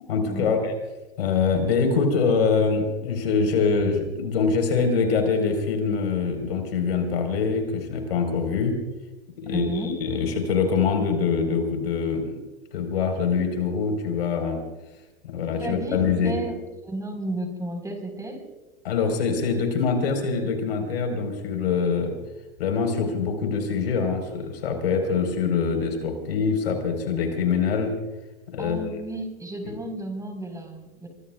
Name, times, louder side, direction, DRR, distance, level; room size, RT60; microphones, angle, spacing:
voice 1, 0.1-0.7 1.2-8.8 9.4-12.4 12.7-14.6 15.2-16.4 18.8-22.2 22.6-27.9 28.5-28.9 29.6-29.7, left 5 dB, 75° left, 5 dB, 4.4 m, -24 dB
voice 2, 9.4-10.0 15.4-18.4 28.6-31.1, right 1 dB, 10° right, 4 dB, 4.4 m, -33 dB
24.5 x 24.5 x 2.4 m, 1.1 s
hypercardioid pair, 100°, 31 cm